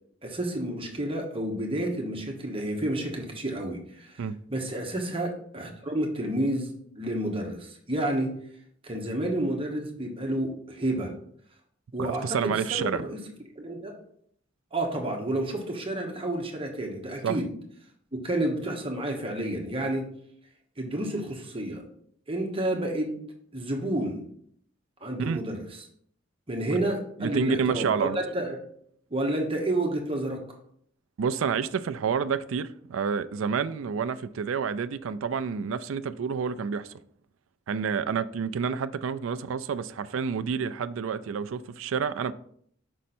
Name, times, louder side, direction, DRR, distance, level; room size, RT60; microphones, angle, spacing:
voice 1, 0.2-4.2 4.5-6.7 7.0-8.3 8.8-11.1 11.9-13.2 13.6-14.0 14.7-17.5 18.2-20.1 20.8-21.8 22.3-23.2 23.5-24.2 25.0-25.6 26.5-27.9 28.1-28.6 29.1-30.4, right 1 dB, 30° right, 1.2 m, -30 dB
voice 2, 12.1-13.0 17.2-17.4 25.2-25.4 26.7-26.8 27.2-28.2 31.2-36.9 37.7-42.3, right 6 dB, 80° right, 0.4 m, -29 dB
6.3 x 5.4 x 4.3 m
head